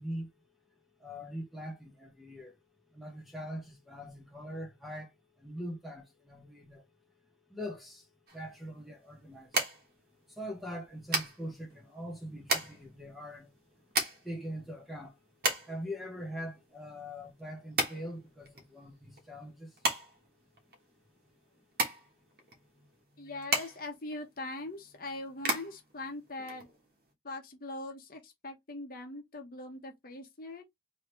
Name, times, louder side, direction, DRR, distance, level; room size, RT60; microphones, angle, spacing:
voice 1, 0.0-2.6 2.9-9.6 10.3-15.2 15.7-19.9 20.7-20.8 21.6-21.7, equal, ahead, 1.2 m, -43 dB
sound 1, 8.3-27.1, right 2 dB, 60° right, 1.3 m, -36 dB
voice 2, 23.2-26.7 27.2-30.6, left 2 dB, 55° left, 1.1 m, -41 dB
3.7 x 3.1 x 3.2 m
head